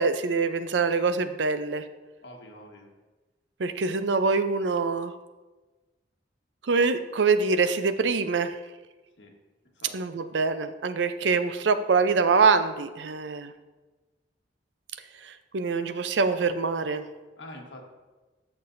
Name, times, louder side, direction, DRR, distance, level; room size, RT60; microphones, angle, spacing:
voice 1, 0.0-1.9 3.6-5.2 6.6-8.6 9.9-13.5 15.2-17.0, right 4 dB, 75° right, 11 dB, 0.5 m, -24 dB
voice 2, 2.2-2.9 9.2-9.3 9.7-10.2 11.2-11.3 17.4-17.8, left 1 dB, 70° left, 1 dB, 1.4 m, -46 dB
14.0 x 6.0 x 2.6 m, 1.2 s
head